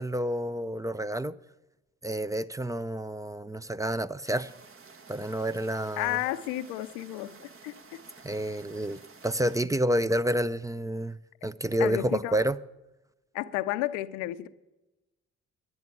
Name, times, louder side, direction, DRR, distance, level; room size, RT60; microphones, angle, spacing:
voice 1, 0.0-1.4 2.0-4.5 5.1-6.2 8.2-12.6, right 1 dB, 10° right, 0.5 m, -29 dB
sound 1, 4.2-9.6, right 4 dB, 40° right, 1.3 m, -52 dB
voice 2, 6.0-7.4 7.6-8.0 11.8-12.4 13.3-14.5, left 16 dB, 80° left, 0.6 m, -32 dB
11.0 x 10.5 x 7.2 m
hypercardioid pair, 45°, 32 cm